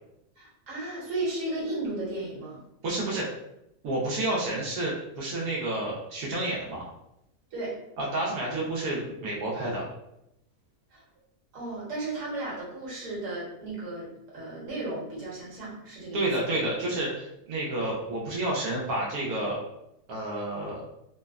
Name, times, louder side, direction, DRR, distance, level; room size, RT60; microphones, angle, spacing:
voice 1, 0.4-2.6 7.5-7.8 10.9-11.0 11.5-16.5, right 2 dB, 60° right, -5 dB, 1.3 m, -34 dB
voice 2, 2.8-3.3 3.8-6.9 8.0-9.8 16.1-19.6 20.1-20.8, right 1 dB, 85° right, -5 dB, 1.1 m, -30 dB
3.2 x 2.0 x 2.3 m, 0.84 s
omnidirectional pair, 1.6 m